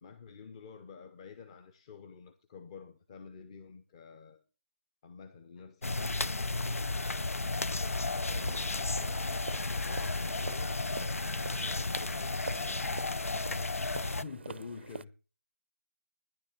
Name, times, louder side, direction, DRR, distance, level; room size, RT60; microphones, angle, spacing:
voice 1, 0.0-4.4 5.0-6.1 13.9-15.1, left 5 dB, 20° left, 1.0 m, -48 dB
sound 1, 5.8-14.2, left 3 dB, 65° left, 0.9 m, -33 dB
voice 2, 7.7-10.7 11.2-12.9, left 5 dB, 45° left, 2.3 m, -53 dB
sound 2, 8.2-15.0, right 5 dB, 45° right, 0.6 m, -46 dB
15.0 x 10.5 x 7.0 m
figure-of-eight pair, 160°, 8 cm